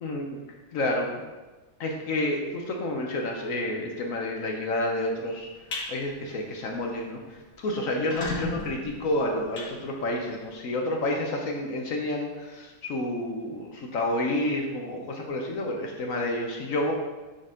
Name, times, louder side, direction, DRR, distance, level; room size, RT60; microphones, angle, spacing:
voice 1, 0.7-1.2 1.8-5.5 5.9-16.9, left 1 dB, 60° left, 1 dB, 1.1 m, -29 dB
sound 1, 5.4-5.9 6.3-6.6 6.9-7.0 7.2-7.3 7.9-10.4, left 2 dB, 75° left, 1.8 m, -35 dB
8.3 x 3.9 x 3.7 m, 1.2 s
omnidirectional pair, 1.9 m